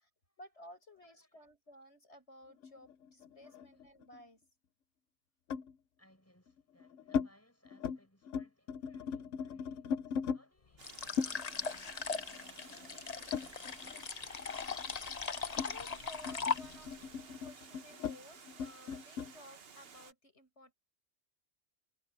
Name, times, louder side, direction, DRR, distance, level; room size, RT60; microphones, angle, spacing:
voice 1, 0.4-4.4 15.7-20.7, left 1 dB, 65° left, 7.8 m, -56 dB
voice 2, 1.0-1.5 3.4-3.8 6.0-14.7, equal, 10° left, 7.5 m, -68 dB
sound 1, 2.6-4.2 5.5-5.7 6.5-7.3 7.6-8.0 8.2-10.4 11.2-14.0 14.3-19.3, left 6 dB, 90° left, 1.1 m, -39 dB
sound 2, 10.8-17.0, left 5 dB, 35° left, 0.8 m, -39 dB
Water, 10.8-20.1, right 6 dB, 55° right, 1.3 m, -55 dB
omnidirectional pair, 1.2 m